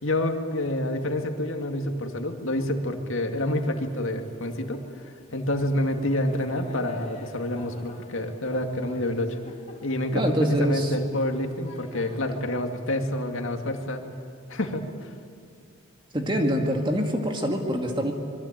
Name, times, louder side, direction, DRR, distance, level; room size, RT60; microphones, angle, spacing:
voice 1, 0.0-4.8 5.3-9.4 9.8-14.0 14.5-14.8, left 1 dB, 65° left, 4 dB, 2.3 m, -28 dB
Thunder / Rain, 3.3-12.2, left 2 dB, 35° left, 3.4 m, -49 dB
voice 2, 10.1-11.0 16.1-18.1, equal, 20° right, 3 dB, 2.0 m, -25 dB
26.0 x 22.5 x 8.9 m, 2.2 s
head